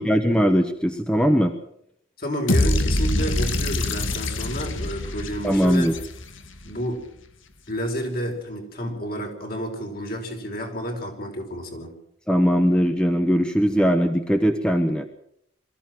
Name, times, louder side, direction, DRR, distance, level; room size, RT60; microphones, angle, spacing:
voice 1, 0.0-1.5 5.4-5.9 12.3-15.1, equal, 5° left, 6 dB, 1.1 m, -20 dB
voice 2, 2.2-5.9 6.6-7.0 7.7-11.9, equal, 50° left, 3 dB, 4.9 m, -30 dB
sound 1, 2.5-6.6, left 1 dB, 85° left, 2.2 m, -24 dB
23.5 x 14.5 x 7.6 m, 0.73 s
head